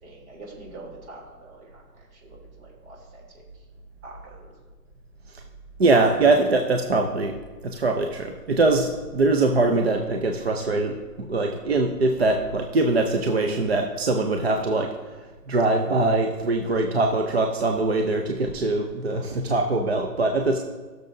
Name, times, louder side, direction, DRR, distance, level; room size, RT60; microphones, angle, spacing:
voice 1, 0.0-3.4 4.0-4.5, right 2 dB, 60° right, -1 dB, 3.2 m, -45 dB
voice 2, 5.8-7.4 7.6-20.6, right 2 dB, 40° right, 3 dB, 0.5 m, -22 dB
16.5 x 6.7 x 2.6 m, 1.3 s
hypercardioid pair, 170°, 48 cm